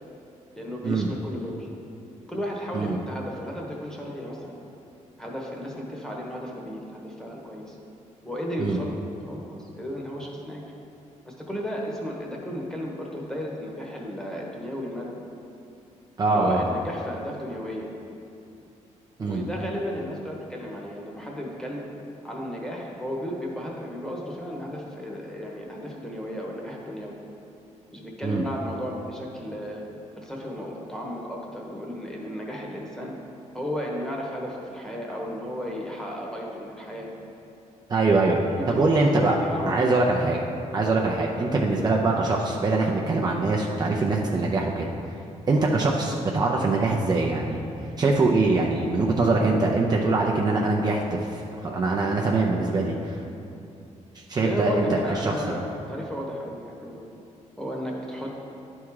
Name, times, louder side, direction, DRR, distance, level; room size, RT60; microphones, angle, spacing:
voice 1, 0.5-1.7 2.3-4.6 5.2-7.7 8.2-10.6 11.2-15.1 16.3-17.9 19.2-21.9 22.2-27.1 27.9-29.8 30.2-33.1 33.5-37.1 38.6-40.0 54.4-57.0 57.6-58.3, equal, 5° left, -2 dB, 1.1 m, -34 dB
voice 2, 16.2-16.6 19.2-19.4 28.2-28.4 37.9-38.4 38.7-39.4 39.7-40.4 40.7-44.9 45.5-47.6 48.0-51.2 51.6-53.2 54.3-55.6, right 3 dB, 30° right, -2 dB, 0.5 m, -23 dB
10.5 x 3.6 x 4.7 m, 2.7 s
cardioid pair, 125°, 13 cm